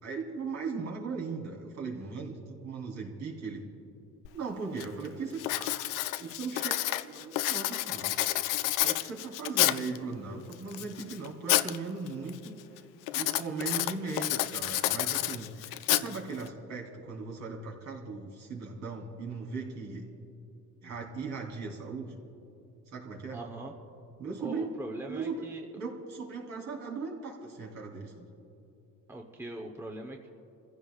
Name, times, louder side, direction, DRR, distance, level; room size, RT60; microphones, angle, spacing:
voice 1, 0.0-3.6 4.3-5.9 6.2-8.1 8.8-12.6 13.1-20.0 20.8-22.2 22.9-23.4 24.2-24.7 25.1-25.5 25.7-28.3, right 4 dB, 60° right, -2 dB, 3.4 m, -38 dB
Writing, 4.2-4.3 4.8-5.1 5.4-10.0 10.5-11.8 12.1-12.5 13.1-16.5, left 14 dB, 85° left, 0.6 m, -29 dB
voice 2, 23.3-23.7 24.4-25.7 29.1-30.3, right 1 dB, 10° right, 1 dB, 0.9 m, -41 dB
28.0 x 15.5 x 2.4 m, 2.8 s
cardioid pair, 130°, 32 cm